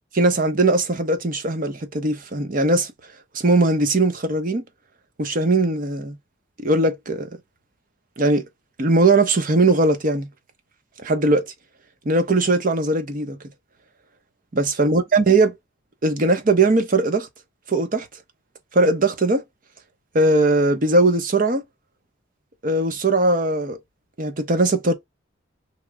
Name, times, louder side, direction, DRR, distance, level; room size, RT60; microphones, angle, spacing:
voice 1, 0.1-2.9 3.3-4.6 5.2-6.2 6.6-7.3 8.2-8.4 8.8-10.3 11.0-11.4 12.0-13.4 14.5-15.5 16.0-17.3 17.7-18.1 18.7-19.4 20.1-21.6 22.6-23.8 24.2-24.9, right 2 dB, 40° right, 0.7 m, -19 dB
3.0 x 2.1 x 3.4 m
head